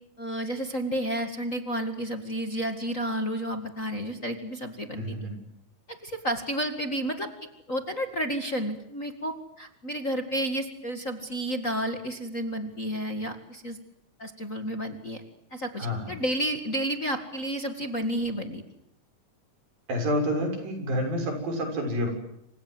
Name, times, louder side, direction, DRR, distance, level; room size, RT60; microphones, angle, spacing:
voice 1, 0.2-5.2 5.9-7.3 7.7-13.8 14.2-15.2 15.5-18.6, right 1 dB, 30° left, 7 dB, 1.9 m, -31 dB
voice 2, 5.0-5.3 15.8-16.1 19.9-22.1, equal, 90° right, 4 dB, 8.4 m, -28 dB
28.5 x 26.5 x 8.0 m, 0.80 s
omnidirectional pair, 4.0 m